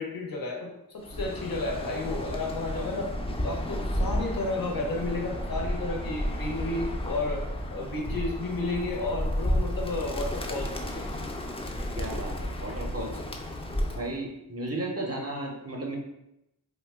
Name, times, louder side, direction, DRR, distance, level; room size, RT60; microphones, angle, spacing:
voice 1, 0.0-3.1 3.4-7.5 7.7-11.2, left 2 dB, 65° left, 1 dB, 0.8 m, -32 dB
Bird, 1.0-14.1, equal, 15° left, 0.3 m, -32 dB
voice 2, 12.0-13.2 14.0-16.0, right 2 dB, 40° right, 1 dB, 0.5 m, -34 dB
2.8 x 2.1 x 3.3 m, 0.87 s
wide cardioid pair, 60°, 38 cm